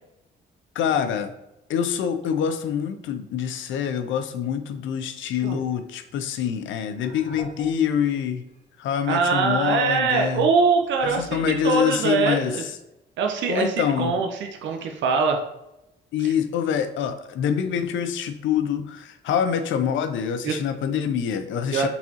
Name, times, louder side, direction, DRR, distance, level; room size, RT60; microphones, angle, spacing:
voice 1, 0.8-1.3 1.7-8.4 8.8-10.5 11.0-12.7 13.5-14.1 16.1-21.9, left 8 dB, 75° left, 9 dB, 0.5 m, -25 dB
sound 1, 5.3-5.6 6.7-8.1 8.5-8.6 9.0-9.3 10.0-11.8, equal, 55° left, 1.1 m, -45 dB
voice 2, 9.1-11.4 11.6-12.6 13.2-15.4 20.4-20.6 21.7-21.9, right 5 dB, 70° right, 4 dB, 0.6 m, -22 dB
4.1 x 3.6 x 2.8 m, 0.89 s
cardioid pair, 90°, 20 cm